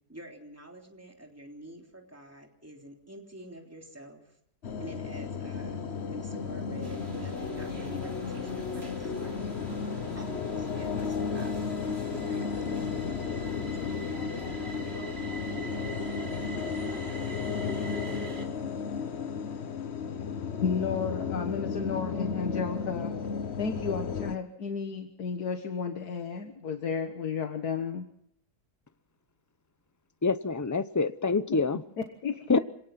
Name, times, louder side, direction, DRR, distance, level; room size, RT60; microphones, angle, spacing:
voice 1, 0.1-4.4 4.8-9.4 10.1-12.9 13.8-13.9, right 1 dB, 10° right, 2 dB, 3.4 m, -47 dB
sound 1, 4.6-24.4, left 6 dB, 50° left, 1.2 m, -34 dB
sound 2, 6.8-18.5, right 2 dB, 40° right, 3.3 m, -42 dB
voice 2, 20.6-23.2 23.6-28.1 31.5-31.6 32.0-32.6, left 5 dB, 80° left, 6 dB, 1.9 m, -33 dB
voice 3, 30.2-31.8 32.5-32.6, left 4 dB, 20° left, 13 dB, 0.4 m, -26 dB
26.0 x 18.0 x 5.9 m, 0.68 s
omnidirectional pair, 1.6 m